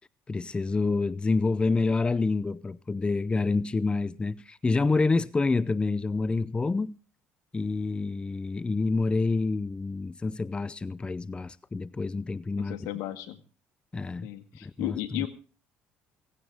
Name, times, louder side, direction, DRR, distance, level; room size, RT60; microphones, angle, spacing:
voice 1, 0.3-7.0 7.5-12.9 13.9-14.3 14.6-15.3, left 3 dB, 20° left, 0.6 m, -28 dB
voice 2, 12.6-13.4 14.2-15.3, left 15 dB, 85° left, 1.9 m, -34 dB
17.0 x 16.5 x 3.5 m
supercardioid pair, 80°, 5 cm